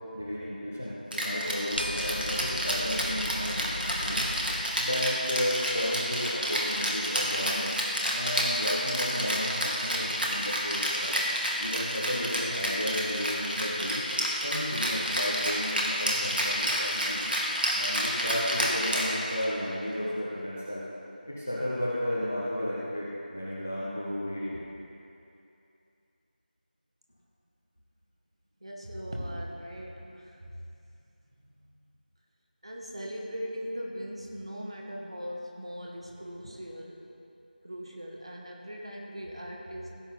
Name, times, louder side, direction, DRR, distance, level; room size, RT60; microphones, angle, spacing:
voice 1, 0.1-4.3 4.8-7.7 8.1-11.2 11.6-14.0 14.4-17.2 17.7-20.8 21.3-24.6, equal, 15° left, -7 dB, 0.5 m, -33 dB
Rattle (instrument), 1.1-19.6, equal, 70° right, 2.3 m, -30 dB
sound 1, 1.8-4.6, equal, 85° left, 0.8 m, -37 dB
voice 2, 28.6-30.5 31.4-31.7 32.6-37.0 37.6-39.9, equal, 35° right, -1 dB, 1.3 m, -39 dB
16.0 x 7.8 x 3.9 m, 2.7 s
figure-of-eight pair, 175°, 5 cm